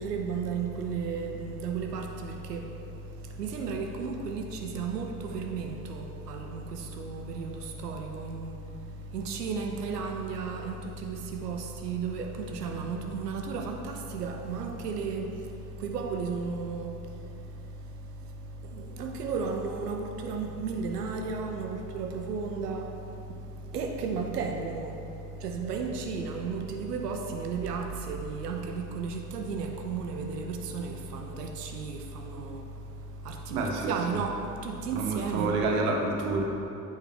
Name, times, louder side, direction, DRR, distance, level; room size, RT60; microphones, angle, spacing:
voice 1, 0.0-35.5, right 4 dB, 90° right, 0.6 m, -34 dB
voice 2, 33.5-33.9 34.9-36.4, right 3 dB, 70° right, 1.1 m, -28 dB
8.3 x 5.5 x 3.7 m
figure-of-eight pair, 55°, 46 cm